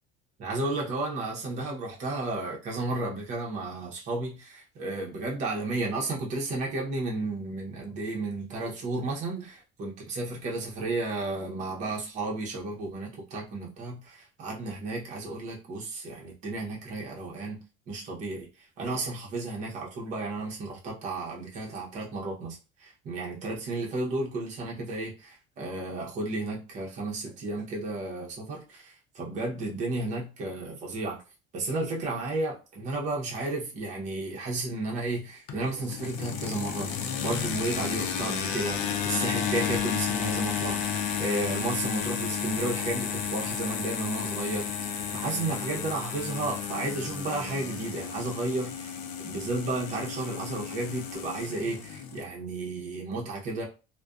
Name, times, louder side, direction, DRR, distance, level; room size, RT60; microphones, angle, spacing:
voice 1, 0.4-17.6 17.9-18.5 18.8-31.2 31.5-36.9 37.2-44.7 45.1-49.0 49.2-53.6, right 2 dB, 40° right, -2 dB, 0.8 m, -33 dB
sound 1, 35.5-52.2, left 7 dB, 85° left, 0.5 m, -32 dB
2.4 x 2.2 x 2.3 m, 0.32 s
cardioid pair, 160°, 20 cm